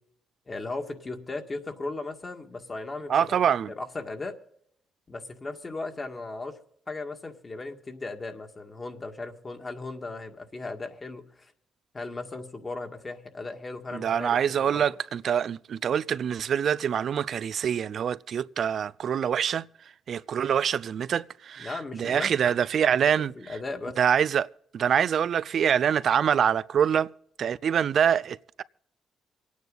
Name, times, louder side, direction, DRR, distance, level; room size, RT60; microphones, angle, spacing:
voice 1, 0.5-3.4 3.7-4.4 5.1-6.6 6.9-11.5 11.9-14.9 21.6-22.6 22.9-24.0, left 3 dB, 30° left, 2.0 m, -37 dB
voice 2, 3.1-3.7 13.9-19.6 20.1-23.3 24.0-24.5 24.7-27.1 27.4-28.6, right 8 dB, 60° right, 0.5 m, -25 dB
25.0 x 9.5 x 4.0 m
cardioid pair, 90°, 0 cm